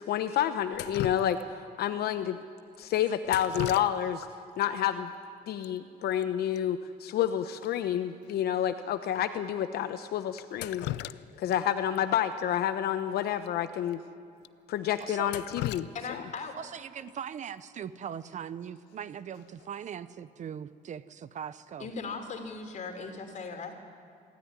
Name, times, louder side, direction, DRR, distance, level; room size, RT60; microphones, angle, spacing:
voice 1, 0.1-1.4 1.8-2.4 2.8-4.3 4.6-5.1 5.5-10.9 11.4-14.0 14.7-16.2, left 10 dB, 70° left, 9 dB, 0.9 m, -29 dB
Drip, 0.7-1.7 3.2-4.3 4.6-4.7 5.6-5.7 6.0-6.2 6.5-6.6 7.1-7.2 7.6-7.7 8.3-8.4 9.1-9.2 10.4-11.6 11.9-12.0 13.4-13.5 13.9-14.0 14.4-14.5 15.0-16.6 18.6-18.9 19.3-19.7, left 15 dB, 90° left, 0.6 m, -38 dB
voice 2, 15.0-15.4 16.6-21.9, right 8 dB, 45° right, 15 dB, 0.8 m, -40 dB
voice 3, 15.9-16.5 21.8-23.7, left 4 dB, 45° left, 5 dB, 3.4 m, -38 dB
26.5 x 13.5 x 9.8 m, 2.4 s
cardioid pair, 110°, 17 cm